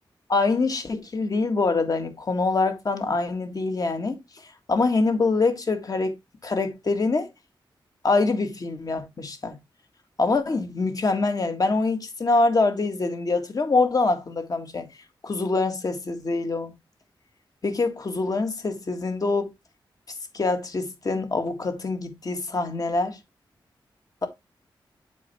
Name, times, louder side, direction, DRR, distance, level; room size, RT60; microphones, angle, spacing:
voice 1, 0.3-4.2 4.7-6.2 6.4-7.3 8.0-9.6 10.2-14.9 15.2-16.7 17.6-19.5 20.3-23.2, left 3 dB, 45° left, 1.8 m, -24 dB
7.3 x 5.6 x 3.4 m
wide cardioid pair, 90°, 9 cm